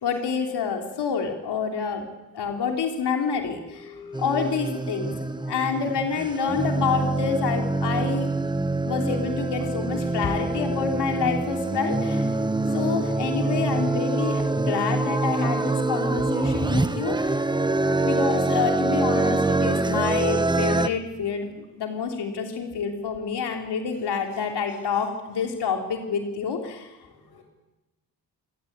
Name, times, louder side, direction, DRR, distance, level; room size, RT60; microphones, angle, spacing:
voice 1, 0.0-2.1 2.3-3.9 4.2-5.1 5.4-8.3 8.8-12.2 12.7-17.3 18.0-26.9, left 6 dB, 85° left, 3 dB, 3.2 m, -28 dB
voice 2, 2.3-2.7 3.3-4.6 5.1-5.6 9.6-9.7 12.6-13.0 13.4-13.5 17.0-17.1 17.7-18.1 27.2-27.4, left 4 dB, 65° left, 4 dB, 7.4 m, -45 dB
sound 1, 4.1-20.9, right 2 dB, 10° right, 1.1 m, -25 dB
24.5 x 18.5 x 8.7 m, 1.1 s
cardioid pair, 110°, 39 cm